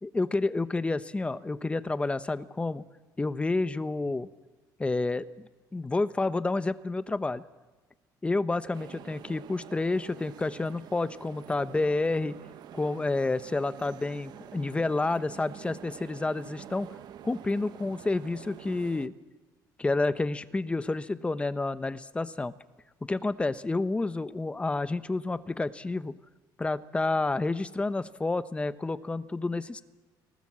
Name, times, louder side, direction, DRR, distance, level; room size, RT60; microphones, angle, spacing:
voice 1, 0.0-2.8 3.2-4.3 4.8-7.4 8.2-12.3 12.7-16.9 17.2-19.1 19.8-22.5 23.1-26.1 26.6-29.8, left 3 dB, 15° left, 13 dB, 0.9 m, -29 dB
sound 1, 8.7-19.1, right 11 dB, 60° right, 1.0 m, -48 dB
29.5 x 19.5 x 7.5 m, 1.2 s
cardioid pair, 120°, 8 cm